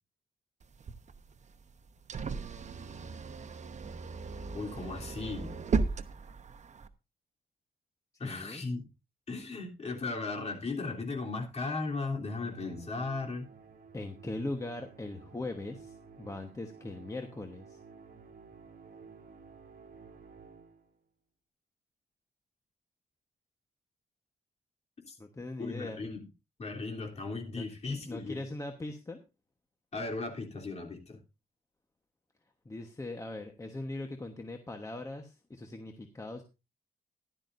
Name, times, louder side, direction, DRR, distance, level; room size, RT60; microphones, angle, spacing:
sound 1, 0.6-6.9, right 4 dB, 45° right, 1.0 m, -36 dB
voice 1, 4.5-5.5 8.2-8.8 9.3-13.5 25.1-25.2 25.6-26.2 26.6-28.4 29.9-31.2, left 3 dB, 40° left, 1 dB, 3.3 m, -36 dB
voice 2, 8.1-8.6 13.9-17.8 25.2-26.0 27.5-29.2 32.6-36.4, left 2 dB, 20° left, 5 dB, 1.2 m, -40 dB
Musical instrument, 12.4-21.0, right 5 dB, 60° right, 2.5 m, -53 dB
15.0 x 11.5 x 2.6 m, 0.28 s
wide cardioid pair, 130°, 17 cm